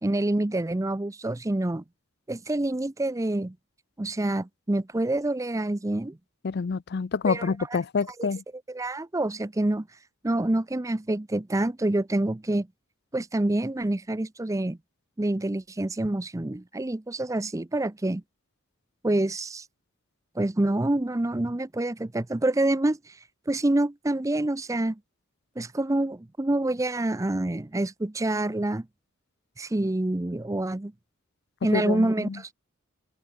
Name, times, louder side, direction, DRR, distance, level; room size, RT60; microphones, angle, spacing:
voice 1, 0.0-1.8 2.3-3.5 4.0-6.2 7.3-7.8 8.2-8.3 8.7-9.9 10.2-12.7 13.1-14.8 15.2-18.2 19.0-19.7 20.4-25.0 25.6-28.9 29.6-30.9 31.6-32.5, right 1 dB, 15° right, 0.5 m, -27 dB
voice 2, 6.4-8.4 31.7-32.4, left 5 dB, 50° left, 0.4 m, -27 dB
open air
head